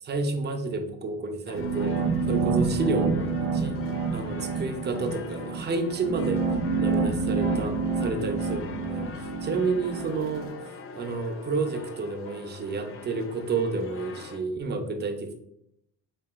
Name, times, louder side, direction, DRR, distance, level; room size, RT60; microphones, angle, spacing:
voice 1, 0.0-3.8 4.1-6.4 6.8-10.5 10.9-15.3, right 3 dB, 30° right, 6 dB, 0.5 m, -30 dB
sound 1, 1.5-14.4, left 5 dB, 40° left, 0.4 m, -43 dB
sound 2, 1.5-10.5, right 4 dB, 90° right, 0.6 m, -28 dB
3.7 x 3.4 x 2.2 m, 0.77 s
cardioid pair, 95°, 37 cm